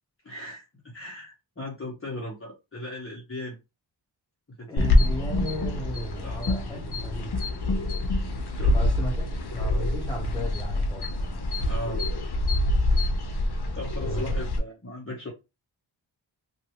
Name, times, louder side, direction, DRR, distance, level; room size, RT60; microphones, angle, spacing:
voice 1, 0.2-3.6 4.6-5.0 6.2-6.4 8.6-8.8 11.7-12.0 13.7-15.3, left 1 dB, 25° left, 1.0 m, -37 dB
voice 2, 4.7-7.3 8.7-9.2 9.5-11.1 14.0-14.5, right 2 dB, 10° left, 1.3 m, -35 dB
sound 1, 4.8-14.6, left 1 dB, 55° left, 0.8 m, -26 dB
sound 2, 5.6-10.6, right 1 dB, 30° right, 1.2 m, -48 dB
3.0 x 2.7 x 3.0 m
wide cardioid pair, 85°, 47 cm